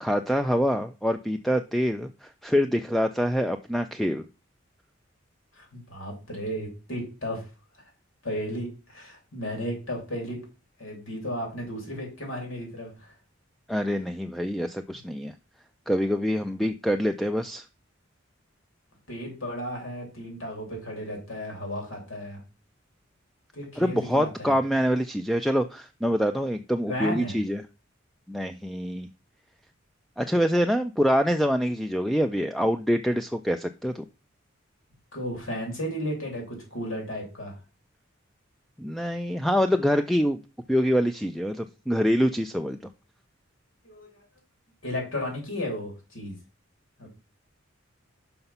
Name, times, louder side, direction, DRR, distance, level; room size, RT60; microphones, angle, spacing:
voice 1, 0.0-4.2 13.7-15.3 15.9-17.7 23.8-27.6 28.3-29.1 30.2-34.0 38.8-40.4 40.7-42.8, equal, ahead, 7 dB, 0.3 m, -25 dB
voice 2, 5.5-7.4 8.2-10.4 10.8-12.9 19.1-22.4 23.5-24.5 26.9-27.3 35.1-37.6 43.8-44.1 44.8-46.4 47.0-47.1, equal, 90° left, 0 dB, 2.9 m, -34 dB
5.8 x 5.6 x 5.4 m, 0.31 s
head